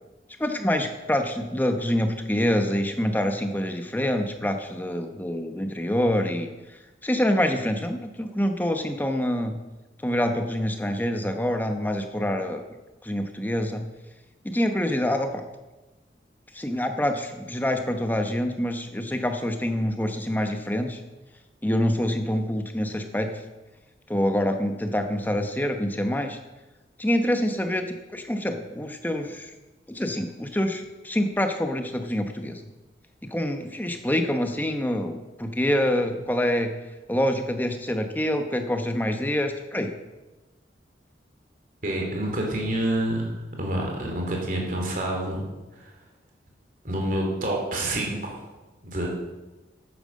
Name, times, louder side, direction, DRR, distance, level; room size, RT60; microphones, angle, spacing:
voice 1, 0.4-6.5 7.0-9.6 10.0-12.6 13.0-13.8 14.4-15.4 16.5-21.0 21.6-23.3 24.1-26.4 27.0-29.5 29.9-32.6 33.3-36.7 37.1-39.9, left 1 dB, 10° left, 6 dB, 0.9 m, -26 dB
voice 2, 41.8-45.4 45.8-45.9 46.8-48.4 48.8-49.1, right 1 dB, 50° right, 0 dB, 3.0 m, -28 dB
9.3 x 9.2 x 6.4 m, 1.1 s
head